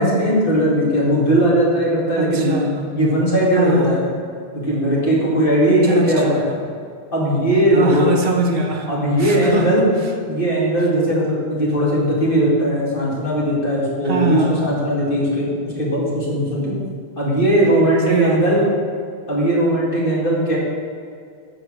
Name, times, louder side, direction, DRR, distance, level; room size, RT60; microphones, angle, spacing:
voice 1, 0.0-2.6 2.9-4.0 4.5-6.4 7.1-8.1 8.9-9.9 10.3-16.7 17.2-18.6 19.3-20.6, right 1 dB, 60° left, -6 dB, 2.3 m, -18 dB
voice 2, 2.2-2.9 3.6-4.0 5.8-6.4 7.7-8.9 9.2-9.8 14.0-14.6 18.1-18.6, right 2 dB, 65° right, 2 dB, 1.2 m, -22 dB
7.2 x 5.4 x 6.1 m, 2.3 s
omnidirectional pair, 1.1 m